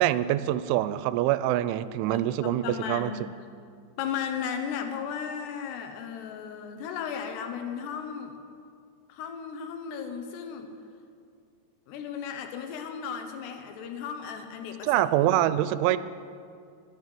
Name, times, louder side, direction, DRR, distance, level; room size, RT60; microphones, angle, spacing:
voice 1, 0.0-3.1 14.9-16.0, right 13 dB, 90° right, 14 dB, 3.0 m, -25 dB
voice 2, 2.1-3.3 4.0-8.4 9.1-10.7 11.9-15.3, left 7 dB, 75° left, 6 dB, 2.9 m, -35 dB
13.0 x 11.0 x 6.8 m, 2.3 s
omnidirectional pair, 5.4 m